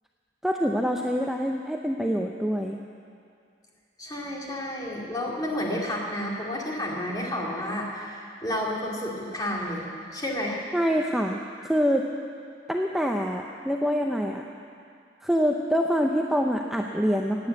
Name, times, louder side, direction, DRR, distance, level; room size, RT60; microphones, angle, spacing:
voice 1, 0.4-2.8 10.7-12.1 12.7-14.4 15.2-17.5, equal, ahead, 1 dB, 0.6 m, -25 dB
voice 2, 4.0-9.9 10.1-10.6, left 1 dB, 20° left, -3 dB, 2.5 m, -31 dB
18.0 x 9.5 x 7.9 m, 2.4 s
head